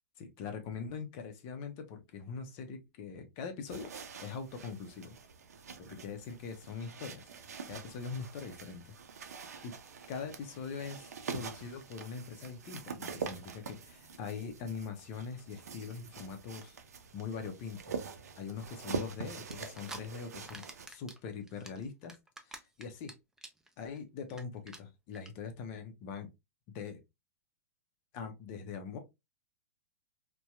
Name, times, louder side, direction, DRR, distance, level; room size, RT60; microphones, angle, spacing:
voice 1, 0.2-3.9 4.2-5.2 5.8-7.2 7.7-9.0 9.6-9.7 10.1-16.8 17.1-18.0 18.4-22.1 22.4-23.2 23.8-26.3 26.7-27.0 28.1-29.0, left 5 dB, 45° left, 0.7 m, -42 dB
sound 1, 3.7-20.9, right 5 dB, 80° right, 0.5 m, -45 dB
sound 2, 19.5-20.0 20.3-21.2 21.5-23.1 23.4-23.7 24.0-24.1 24.3-24.4 24.7-24.8 25.1-25.3, right 2 dB, 5° right, 0.4 m, -46 dB
2.7 x 2.2 x 2.2 m
hypercardioid pair, 115°, 8 cm